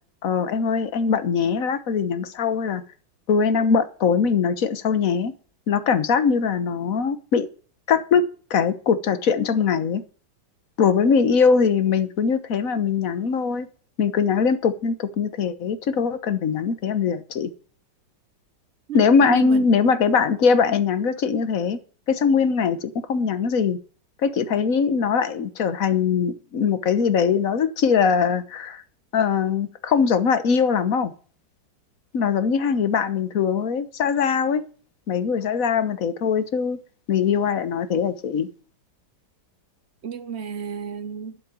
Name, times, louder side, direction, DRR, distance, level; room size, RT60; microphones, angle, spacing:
voice 1, 0.2-2.8 3.3-5.3 5.7-7.5 7.9-8.2 8.5-10.0 10.8-13.7 14.0-17.5 18.9-21.8 22.1-23.8 24.2-28.8 29.1-31.1 32.1-34.6 35.1-36.8 37.1-38.5, left 6 dB, 50° left, 1.4 m, -21 dB
voice 2, 18.9-19.7 40.0-41.4, right 7 dB, 55° right, 0.7 m, -32 dB
12.0 x 7.8 x 7.0 m
omnidirectional pair, 2.1 m